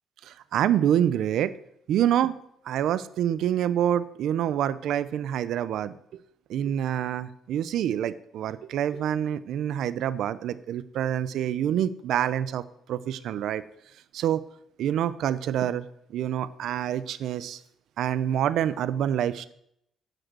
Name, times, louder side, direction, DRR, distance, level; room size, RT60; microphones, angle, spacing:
voice 1, 0.2-1.5 1.9-2.4 2.6-6.2 6.5-12.6 12.9-13.6 14.1-14.4 14.8-15.8 16.1-17.6 18.0-19.5, right 10 dB, 80° right, 15 dB, 0.7 m, -26 dB
10.5 x 7.9 x 7.8 m, 0.72 s
cardioid pair, 90°, 0 cm